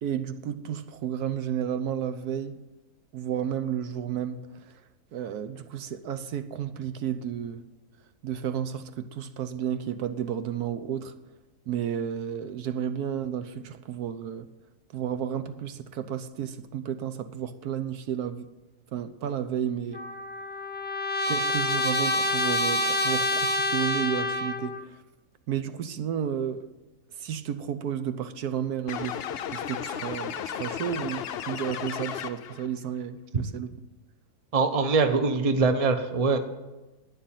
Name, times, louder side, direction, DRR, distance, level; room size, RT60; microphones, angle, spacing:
voice 1, 0.0-2.6 3.1-4.8 5.1-7.6 8.2-11.1 11.7-14.5 14.9-18.5 18.9-20.0 21.3-25.0 25.5-26.7 27.2-29.2 29.5-33.7, right 9 dB, 75° right, 1.2 m, -32 dB
Trumpet, 19.9-24.8, left 2 dB, 15° left, 0.3 m, -27 dB
sound 1, 28.9-32.7, left 8 dB, 60° left, 0.6 m, -34 dB
voice 2, 34.5-36.4, right 4 dB, 25° right, 0.9 m, -23 dB
11.5 x 9.2 x 9.0 m
omnidirectional pair, 1.7 m